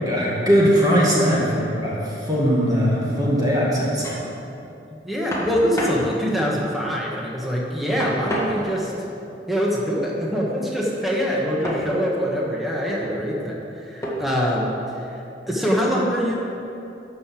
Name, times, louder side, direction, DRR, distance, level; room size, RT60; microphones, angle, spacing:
voice 1, 0.1-4.2, equal, 20° right, -5 dB, 2.1 m, -20 dB
sound 1, 3.8-4.3 5.3-6.1 8.0-9.0 11.6-11.9 12.6-13.1 14.0-14.4, equal, 15° left, 1.6 m, -30 dB
voice 2, 4.9-8.9 9.5-14.7 15.5-16.4, equal, ahead, -4 dB, 1.4 m, -24 dB
12.5 x 5.4 x 7.6 m, 2.7 s
head